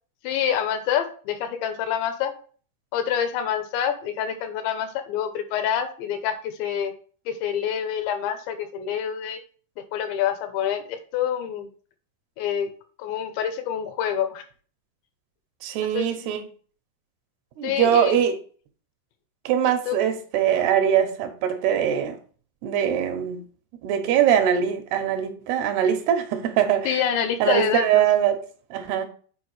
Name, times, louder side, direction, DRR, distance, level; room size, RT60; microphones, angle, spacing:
voice 1, 0.2-2.3 2.9-6.9 7.3-9.4 9.9-11.7 12.4-12.7 13.0-14.4 15.8-16.1 17.6-18.2 19.6-19.9 26.9-28.1, left 9 dB, 80° left, 3.1 m, -27 dB
voice 2, 15.6-16.4 17.6-18.3 19.5-22.2 22.6-23.4 23.8-27.0 27.4-28.4 28.7-29.1, right 9 dB, 75° right, 2.6 m, -22 dB
7.8 x 4.8 x 4.7 m
omnidirectional pair, 5.3 m